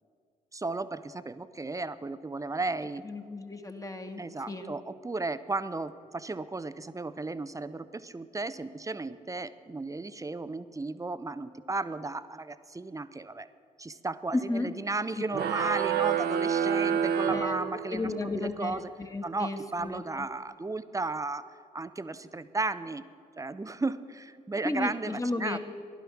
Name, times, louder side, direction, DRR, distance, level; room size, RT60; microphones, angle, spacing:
voice 1, 0.5-3.0 4.2-13.5 13.8-18.9 19.2-23.0 23.4-25.6, right 3 dB, 15° right, 13 dB, 0.7 m, -34 dB
voice 2, 3.0-4.7 14.3-14.7 17.3-17.6 17.9-20.3 24.6-25.6, left 2 dB, 15° left, 5 dB, 1.6 m, -33 dB
sound 1, 15.3-18.2, right 8 dB, 55° right, 0.9 m, -28 dB
15.0 x 11.5 x 6.0 m, 2.3 s
hypercardioid pair, 50°, 20 cm